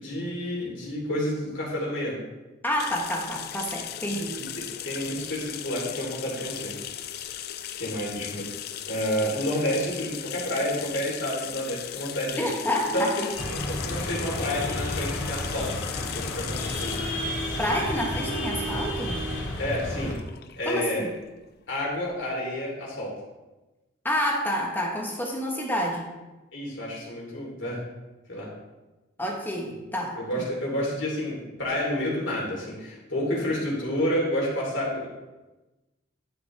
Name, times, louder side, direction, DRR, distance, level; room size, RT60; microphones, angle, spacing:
voice 1, 0.0-2.2 4.3-6.7 7.8-8.5 8.9-12.4 12.9-13.2 13.5-15.7 16.0-16.9 19.6-20.1 20.6-21.1 21.7-23.1 26.5-27.8 28.3-28.5 30.2-35.1, equal, 70° left, -4 dB, 3.0 m, -30 dB
voice 2, 2.6-4.4 12.4-13.1 17.6-19.2 20.6-21.1 24.0-26.1 29.2-30.2, equal, 10° left, 0 dB, 1.0 m, -28 dB
sound 1, 2.8-22.2, left 10 dB, 50° left, 0.4 m, -38 dB
sound 2, 13.3-20.1, left 1 dB, 85° left, 2.6 m, -31 dB
10.5 x 6.2 x 3.3 m, 1.1 s
head